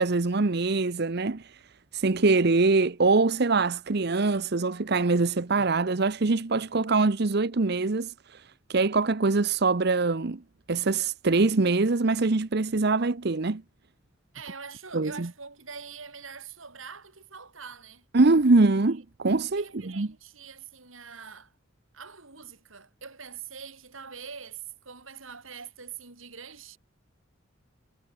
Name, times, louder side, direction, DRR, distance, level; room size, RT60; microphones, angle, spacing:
voice 1, 0.0-1.6 1.9-8.4 8.7-10.4 10.7-13.6 14.9-15.3 18.1-20.1, right 3 dB, 55° right, 0.8 m, -23 dB
voice 2, 14.3-18.1 18.9-19.0 19.5-21.5 21.9-26.8, right 6 dB, 85° right, 5.0 m, -44 dB
head